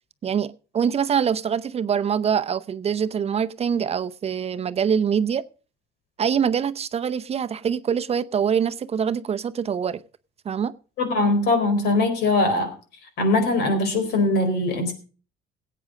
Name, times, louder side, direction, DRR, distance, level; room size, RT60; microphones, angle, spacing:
voice 1, 0.2-5.4 6.2-10.0 10.4-10.7, right 7 dB, 40° right, 0.7 m, -24 dB
voice 2, 11.0-12.7 13.2-14.9, left 2 dB, 75° left, 4.1 m, -21 dB
16.5 x 8.6 x 5.0 m
cardioid pair, 110°, 17 cm